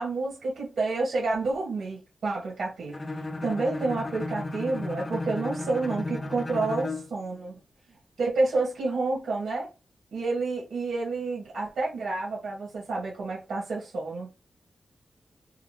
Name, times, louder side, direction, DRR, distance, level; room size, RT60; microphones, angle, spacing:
voice 1, 0.0-2.9 3.4-7.5 8.2-9.7 10.1-14.3, right 3 dB, 90° right, 2.3 m, -29 dB
Bowed string instrument, 2.9-7.2, left 2 dB, 25° left, 0.4 m, -34 dB
4.8 x 2.4 x 3.5 m
wide cardioid pair, 160°, 0 cm